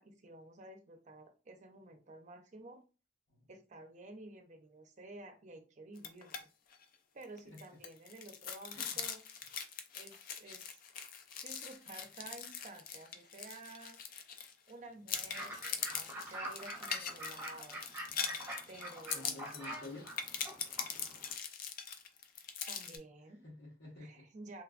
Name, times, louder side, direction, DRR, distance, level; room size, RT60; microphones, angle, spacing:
voice 1, 0.0-2.8 3.5-6.4 7.1-9.2 9.9-10.8 11.4-14.0 14.7-17.9 18.7-19.5 22.7-23.4 24.0-24.6, right 2 dB, 45° right, 5 dB, 0.6 m, -52 dB
sound 1, 6.0-6.4 6.7-6.8 7.2-14.7 15.1-23.0, left 7 dB, 50° left, 0.4 m, -42 dB
Fowl / Bird, 15.1-21.3, right 1 dB, 15° right, 1.0 m, -46 dB
voice 2, 19.1-20.1 23.4-24.2, left 2 dB, 80° left, -7 dB, 1.0 m, -50 dB
3.1 x 2.2 x 2.4 m, 0.33 s
head